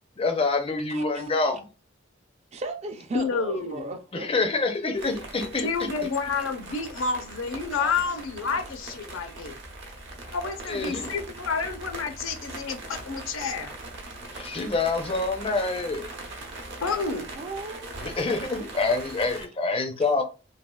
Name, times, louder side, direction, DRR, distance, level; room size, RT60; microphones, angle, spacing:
voice 1, 0.2-1.6 4.1-5.7 10.7-11.1 14.3-16.1 18.0-20.2, left 3 dB, 30° left, 0.4 m, -26 dB
voice 2, 0.9-1.3 2.5-4.3 7.8-8.7 11.0-11.2 16.1-16.3 17.3-17.9 20.0-20.1, right 2 dB, 30° right, 0.4 m, -37 dB
voice 3, 3.1-3.9 5.6-9.6 10.3-13.7 16.8-17.3, left 4 dB, 80° left, 0.6 m, -29 dB
sound 1, 4.9-19.4, right 2 dB, 60° right, 0.7 m, -41 dB
3.4 x 2.3 x 2.2 m
head